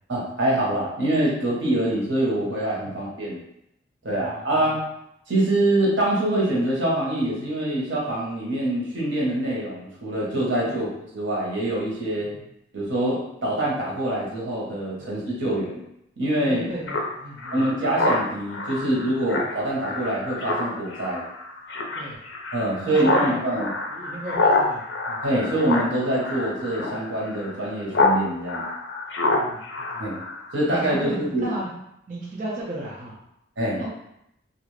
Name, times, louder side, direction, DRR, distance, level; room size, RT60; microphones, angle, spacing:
voice 1, 0.1-3.4 4.0-4.8 5.3-10.9 11.1-12.3 12.7-15.8 16.2-16.6 17.5-21.2 22.5-23.7 25.2-28.7 30.0-30.2 30.5-31.5 33.6-33.8, right 1 dB, 85° right, -4 dB, 1.0 m, -25 dB
voice 2, 4.1-4.5 10.7-10.8 12.1-12.5 15.0-15.1 16.5-17.6 21.9-22.2 22.6-23.4 23.9-25.2 29.3-30.1 30.7-31.7 32.1-33.2 33.8-33.9, right 1 dB, 40° right, -5 dB, 0.5 m, -35 dB
Speech synthesizer, 16.9-28.2 28.5-30.7, left 2 dB, 70° left, 0.5 m, -27 dB
2.5 x 2.4 x 3.1 m, 0.80 s
head